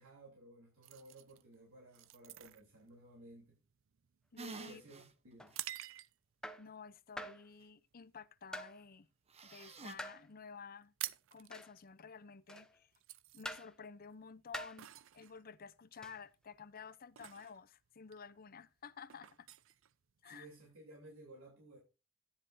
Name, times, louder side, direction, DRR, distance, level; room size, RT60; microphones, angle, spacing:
voice 1, 0.0-3.6 4.7-5.5 20.2-21.8, right 1 dB, 85° right, 3.4 m, -57 dB
sound 1, 0.8-6.4 7.0-7.2 7.7-8.0 8.4-9.5 9.8-9.9 10.1-10.3 10.6-20.6, right 14 dB, 65° right, 0.5 m, -50 dB
voice 2, 4.3-4.8 6.6-9.1 9.4-10.9 11.3-12.9 13.3-19.5 20.2-20.5, left 5 dB, 45° left, 0.6 m, -52 dB
sound 2, 4.4-5.1 5.5-5.6 9.3-9.9, right 3 dB, 30° right, 0.9 m, -48 dB
sound 3, 5.4-5.6 6.4-6.7 7.2-7.5 8.5-8.8 10.0-10.2 11.5-11.8 12.5-12.8 13.4-13.7 14.5-14.8 16.0-16.2, equal, 5° left, 0.7 m, -46 dB
14.0 x 9.9 x 2.7 m
head